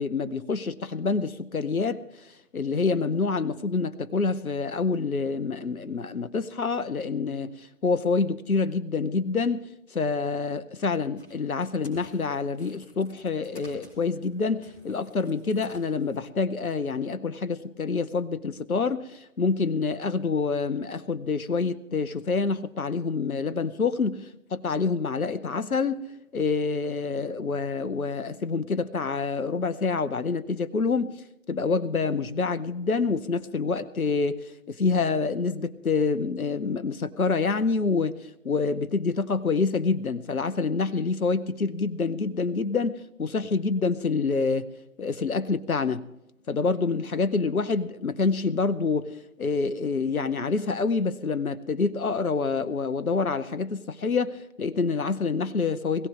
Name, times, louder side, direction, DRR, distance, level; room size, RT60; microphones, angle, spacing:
voice 1, 0.0-26.0 26.3-31.1 31.5-38.2 38.4-44.7 45.0-46.0 46.5-56.1, left 4 dB, 80° left, 14 dB, 0.9 m, -27 dB
sound 1, 11.2-16.3, left 1 dB, 10° left, 2.7 m, -53 dB
20.5 x 15.5 x 3.7 m, 0.90 s
figure-of-eight pair, 140°, 42 cm